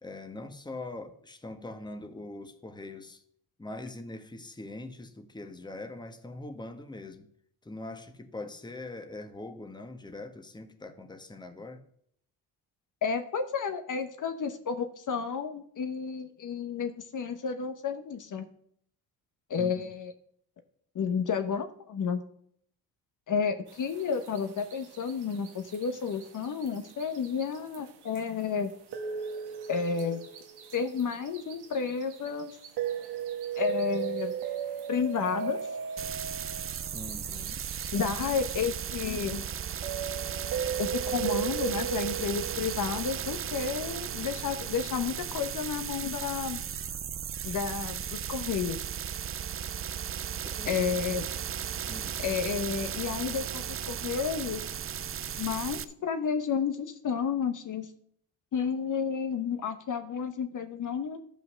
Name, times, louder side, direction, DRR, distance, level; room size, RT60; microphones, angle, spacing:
voice 1, 0.0-3.2 3.6-7.3 7.6-11.8 19.6-19.9 36.9-37.6 50.4-50.8 51.9-52.2, left 2 dB, 10° left, 1.2 m, -42 dB
voice 2, 13.0-18.5 19.5-20.1 20.9-22.2 23.3-28.7 29.7-30.2 30.7-32.5 33.6-34.4 34.9-35.6 37.9-39.4 40.8-46.6 47.4-48.8 50.7-51.3 52.2-54.7 55.4-57.9 58.5-61.2, left 6 dB, 50° left, 1.0 m, -31 dB
sound 1, 23.7-43.5, right 8 dB, 80° right, 1.5 m, -37 dB
sound 2, 36.0-55.8, right 8 dB, 35° right, 0.5 m, -36 dB
12.0 x 5.7 x 6.2 m
cardioid pair, 80°, 39 cm